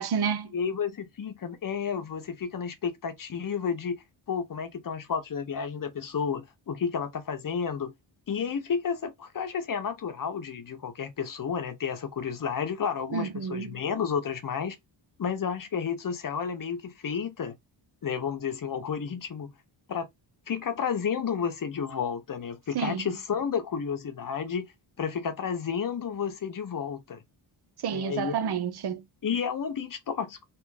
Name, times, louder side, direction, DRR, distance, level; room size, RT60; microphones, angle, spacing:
voice 1, 0.0-0.5 13.1-13.8 22.7-23.1 27.8-29.0, right 7 dB, 55° right, 0.7 m, -30 dB
voice 2, 0.5-7.9 8.3-14.8 15.2-17.5 18.0-19.5 19.9-20.1 20.5-24.7 25.0-27.2 27.9-28.5 29.2-30.4, left 6 dB, 45° left, 0.9 m, -31 dB
3.5 x 3.1 x 4.8 m
wide cardioid pair, 160°, 48 cm